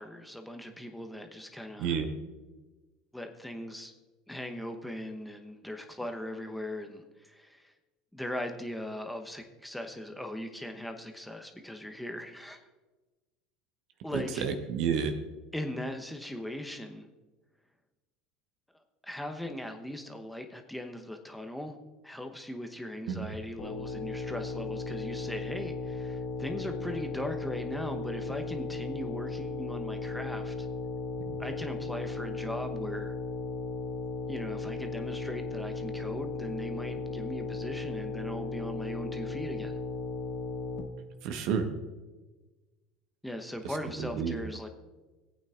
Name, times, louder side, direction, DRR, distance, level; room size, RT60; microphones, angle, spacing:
voice 1, 0.0-1.9 3.1-3.9 4.3-7.7 8.1-12.6 14.0-14.5 15.5-17.1 19.0-21.8 22.0-30.7 31.4-33.1 34.3-39.8 43.2-44.7, left 1 dB, 5° left, 5 dB, 1.0 m, -39 dB
voice 2, 14.1-15.1 23.1-23.4 31.2-31.3 41.2-41.7 44.0-44.4, right 7 dB, 60° right, 8 dB, 1.1 m, -30 dB
sound 1, 23.6-40.8, left 3 dB, 50° left, 1.2 m, -36 dB
18.0 x 8.8 x 2.5 m, 1.2 s
hypercardioid pair, 70°, 0 cm